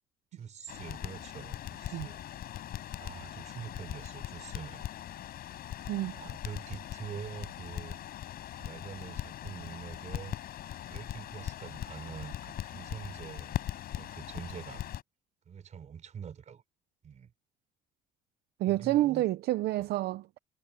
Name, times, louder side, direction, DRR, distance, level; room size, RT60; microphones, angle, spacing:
voice 1, 0.3-2.2 3.0-4.9 6.0-8.0 8.6-10.3 10.8-14.8 15.5-16.6 17.0-17.3 18.7-19.2 19.8-19.9, right 7 dB, 45° right, 5.7 m, -45 dB
Crackle, 0.7-15.0, left 12 dB, 65° left, 6.4 m, -40 dB
voice 2, 5.9-6.2 18.6-20.4, right 15 dB, 70° right, 0.7 m, -29 dB
cardioid pair, 110°, 17 cm